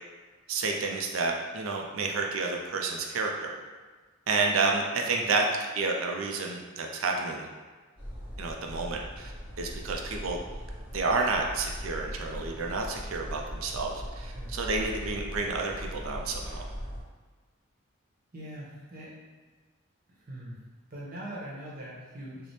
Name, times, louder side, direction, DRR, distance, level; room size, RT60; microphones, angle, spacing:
voice 1, 0.5-3.6 4.3-5.4 5.7-7.5 8.4-9.3 9.6-10.4 10.9-16.6, right 3 dB, 80° right, 1 dB, 0.4 m, -30 dB
sound 1, 8.0-17.0, equal, 5° right, 1.0 m, -40 dB
voice 2, 14.2-14.5 18.3-19.1 20.2-20.6 20.9-22.5, right 1 dB, 45° right, -5 dB, 0.9 m, -42 dB
3.2 x 2.0 x 4.1 m, 1.4 s
head